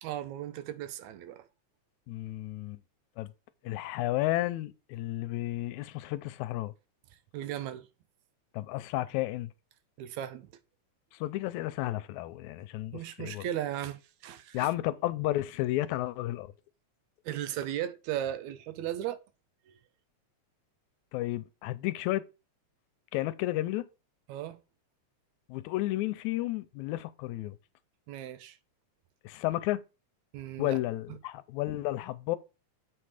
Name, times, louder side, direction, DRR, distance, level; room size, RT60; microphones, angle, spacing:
voice 1, 0.0-1.5 7.3-7.9 10.0-10.5 12.9-14.7 17.3-19.2 24.3-24.6 28.1-28.6 30.3-30.8, right 11 dB, 80° right, 2.0 m, -36 dB
voice 2, 2.1-2.8 3.2-3.3 3.6-6.7 8.5-9.5 11.2-13.5 14.5-16.5 21.1-22.2 23.1-23.9 25.5-27.6 29.2-29.8 30.6-32.4, left 16 dB, 85° left, 1.9 m, -32 dB
7.7 x 4.4 x 4.9 m
omnidirectional pair, 3.3 m